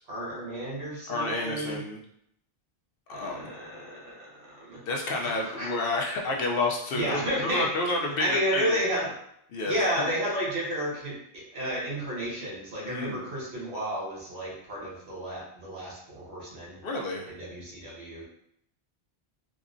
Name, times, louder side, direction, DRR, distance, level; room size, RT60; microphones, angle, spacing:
voice 1, 0.1-1.8 3.1-4.8 5.4-5.7 6.9-7.7 8.2-9.2 9.6-16.8 17.3-18.2, equal, 80° right, -5 dB, 1.3 m, -32 dB
voice 2, 1.1-2.0 3.1-3.5 4.9-8.8 9.5-9.8 12.8-13.2 16.8-17.3, left 2 dB, 65° left, 0 dB, 0.7 m, -30 dB
3.6 x 2.0 x 2.5 m, 0.74 s
omnidirectional pair, 1.1 m